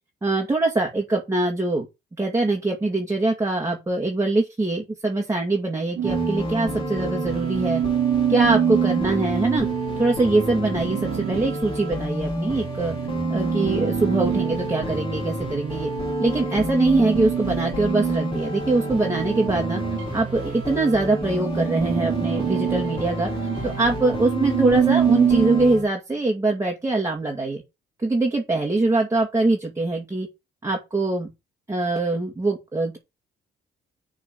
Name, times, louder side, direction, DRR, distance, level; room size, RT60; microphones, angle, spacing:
voice 1, 0.2-1.9 2.2-7.8 8.3-9.7 10.0-13.0 13.3-15.9 16.2-19.8 20.1-23.3 23.6-27.6 28.0-30.3 30.6-31.3 31.7-33.0, right 2 dB, 15° right, 2.2 m, -23 dB
sound 1, 6.0-25.8, equal, 25° left, 3.8 m, -30 dB
sound 2, 6.0-20.5 20.9-25.7, right 10 dB, 70° right, 1.4 m, -27 dB
7.1 x 4.2 x 6.8 m
cardioid pair, 90°, 20 cm